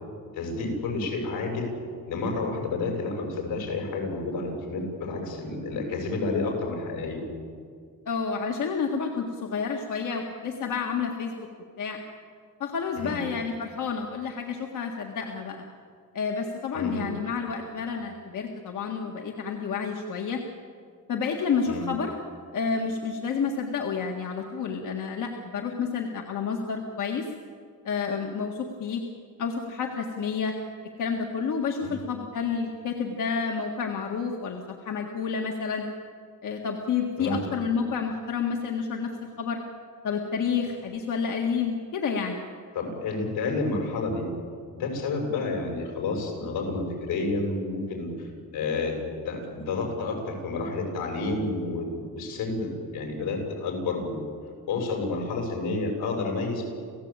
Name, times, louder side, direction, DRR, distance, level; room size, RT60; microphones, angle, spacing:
voice 1, 0.3-1.7 2.0-7.2 13.0-13.1 16.7-17.1 21.7-21.8 31.8-31.9 37.2-37.4 42.7-44.3 44.7-48.3 48.5-48.9 49.3-54.2 54.7-56.7, left 3 dB, 80° left, 2 dB, 7.2 m, -30 dB
voice 2, 8.1-11.5 11.8-12.0 12.6-15.7 16.1-20.4 21.1-22.2 22.5-27.3 27.9-29.0 29.4-30.5 31.0-35.9 36.4-39.6 40.0-42.4, left 6 dB, 55° left, 1 dB, 1.9 m, -30 dB
29.0 x 16.0 x 9.0 m, 2.1 s
cardioid pair, 175°, 36 cm